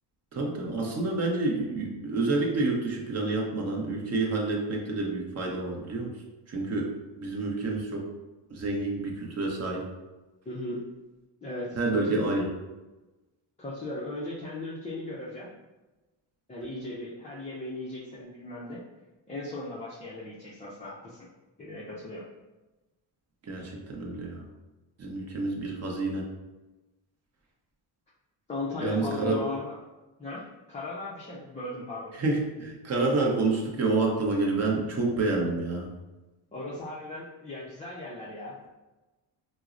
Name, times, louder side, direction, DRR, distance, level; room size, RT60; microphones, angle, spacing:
voice 1, 0.3-6.1 6.5-8.1 8.5-9.8 11.8-12.4 23.4-24.4 25.0-26.2 28.8-29.4 32.2-35.9, right 3 dB, 35° right, 0 dB, 0.7 m, -28 dB
voice 2, 10.5-10.9 11.4-12.3 13.6-15.5 16.5-18.8 19.3-21.3 21.6-22.2 28.5-29.8 30.2-32.1 36.5-38.7, left 2 dB, 15° left, -7 dB, 0.4 m, -37 dB
4.5 x 2.0 x 2.4 m, 1.1 s
cardioid pair, 105°, 47 cm